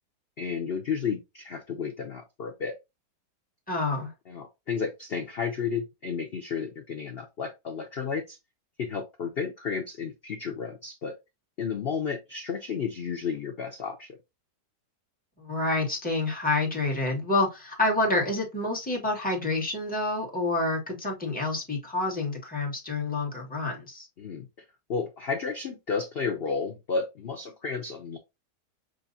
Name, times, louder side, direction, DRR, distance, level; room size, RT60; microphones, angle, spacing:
voice 1, 0.4-2.7 4.3-8.4 8.8-11.1 11.6-14.2 24.2-24.5 24.9-28.2, left 5 dB, 85° left, 5 dB, 0.5 m, -32 dB
voice 2, 3.7-4.1 15.4-24.1, left 2 dB, 5° left, -3 dB, 1.5 m, -28 dB
6.3 x 2.6 x 2.7 m, 0.23 s
omnidirectional pair, 1.9 m